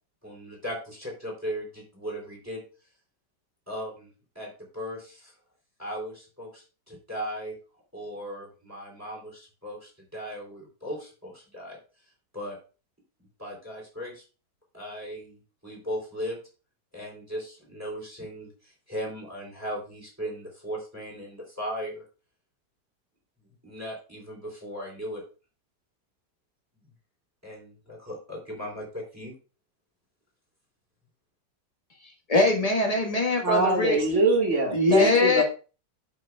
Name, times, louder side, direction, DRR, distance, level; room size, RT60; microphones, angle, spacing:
voice 1, 0.2-2.6 3.7-4.1 4.3-5.3 5.8-7.6 7.9-11.8 12.3-12.6 13.4-14.2 14.7-16.4 16.9-22.0 23.6-25.2 27.4-29.3, equal, 10° right, -1 dB, 3.4 m, -37 dB
voice 2, 32.3-34.0 34.7-35.4, left 2 dB, 20° left, 1 dB, 1.5 m, -22 dB
voice 3, 33.4-35.4, right 2 dB, 45° right, 1 dB, 2.1 m, -23 dB
12.5 x 5.9 x 2.3 m, 0.35 s
omnidirectional pair, 1.9 m